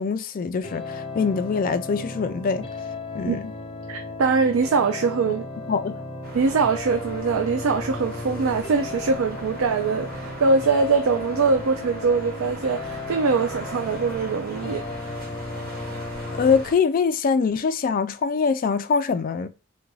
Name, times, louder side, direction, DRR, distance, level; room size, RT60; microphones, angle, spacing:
voice 1, 0.0-2.7 3.1-3.5 5.7-5.9 16.3-19.5, left 5 dB, 40° left, 0.3 m, -23 dB
sound 1, 0.6-16.6, left 2 dB, 25° left, 0.7 m, -35 dB
voice 2, 3.9-5.4 6.3-15.2, right 4 dB, 70° right, 0.4 m, -23 dB
sound 2, 6.2-16.8, equal, 45° right, 1.0 m, -40 dB
3.7 x 2.5 x 4.6 m
head